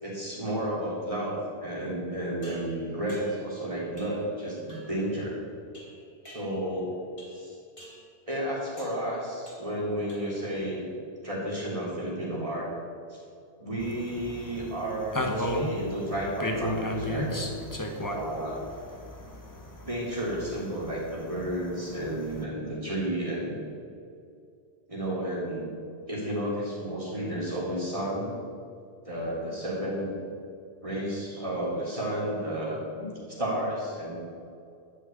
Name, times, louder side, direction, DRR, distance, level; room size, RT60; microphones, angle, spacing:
voice 1, 0.0-5.4 6.2-7.0 7.3-7.6 8.3-10.9 11.2-12.7 13.1-13.2 13.6-17.3 18.0-18.6 19.9-23.6 24.9-25.7 26.1-28.3 29.0-30.1 30.8-34.2, right 1 dB, 30° right, -5 dB, 3.7 m, -32 dB
sound 1, 2.4-3.5 4.0-4.3 4.7-5.0 5.7-6.8 7.2-7.5 7.8-8.1 8.8-9.1 9.5-9.8 10.1-10.5, equal, 55° left, 3.1 m, -51 dB
sound 2, 13.8-22.4, equal, 20° left, 1.1 m, -35 dB
11.5 x 6.6 x 8.9 m, 2.5 s
omnidirectional pair, 1.1 m